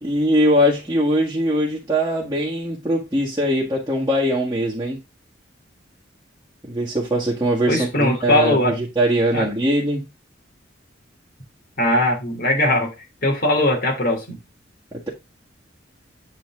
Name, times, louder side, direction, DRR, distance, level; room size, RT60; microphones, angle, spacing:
voice 1, 0.0-5.0 6.7-10.1 14.9-15.1, equal, 20° right, 1.7 m, -21 dB
voice 2, 7.7-8.7 9.3-9.5 11.8-12.9 13.2-14.4, left 1 dB, 55° left, 2.9 m, -20 dB
8.0 x 4.2 x 3.5 m
head